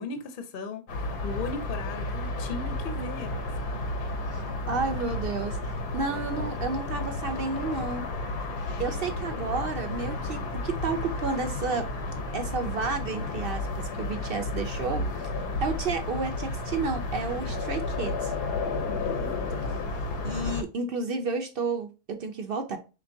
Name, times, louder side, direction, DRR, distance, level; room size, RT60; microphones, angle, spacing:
voice 1, 0.0-3.8 18.9-19.3, left 3 dB, 45° left, 0.7 m, -38 dB
sound 1, 0.9-20.6, left 2 dB, 85° left, 1.5 m, -32 dB
voice 2, 4.2-8.0 8.8-11.9 12.3-15.3 15.6-18.3 20.2-22.8, right 4 dB, 65° right, 0.5 m, -31 dB
5.1 x 3.2 x 2.6 m
omnidirectional pair, 1.7 m